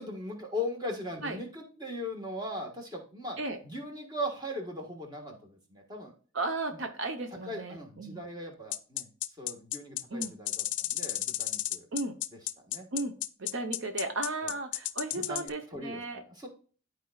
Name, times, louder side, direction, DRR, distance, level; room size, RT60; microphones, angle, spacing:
voice 1, 0.0-3.4 3.6-6.1 6.7-6.8 7.3-9.1 9.4-11.9 12.7-12.8 14.4-14.5 15.1-16.0 16.4-16.5, left 1 dB, 20° right, 2 dB, 1.4 m, -39 dB
voice 2, 6.3-8.2 10.1-10.3 11.9-12.1 12.9-13.1 13.4-16.2, right 2 dB, 65° right, 6 dB, 0.8 m, -35 dB
sound 1, 8.7-15.5, left 14 dB, 55° left, 0.5 m, -33 dB
12.5 x 4.6 x 2.3 m, 0.40 s
head